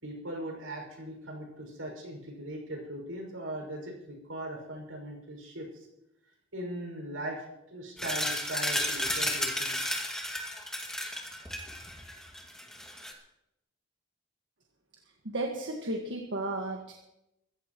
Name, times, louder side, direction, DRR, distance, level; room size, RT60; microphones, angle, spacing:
voice 1, 0.0-5.9 6.5-9.7, right 1 dB, 80° right, 1 dB, 5.9 m, -39 dB
sound 1, 8.0-13.1, left 1 dB, 5° left, 2.2 m, -33 dB
voice 2, 15.3-16.9, right 2 dB, 65° right, 1 dB, 1.7 m, -33 dB
24.0 x 15.0 x 3.1 m, 0.88 s
head